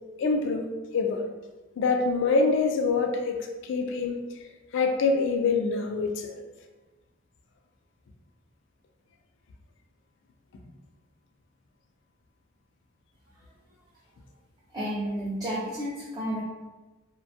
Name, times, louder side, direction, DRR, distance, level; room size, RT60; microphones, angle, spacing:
voice 1, 0.2-0.7 0.9-1.2 1.8-4.2 4.7-6.3, left 4 dB, 65° left, 4 dB, 0.3 m, -25 dB
voice 2, 14.7-16.4, equal, 20° right, -8 dB, 0.4 m, -31 dB
2.5 x 2.2 x 2.7 m, 1.2 s
head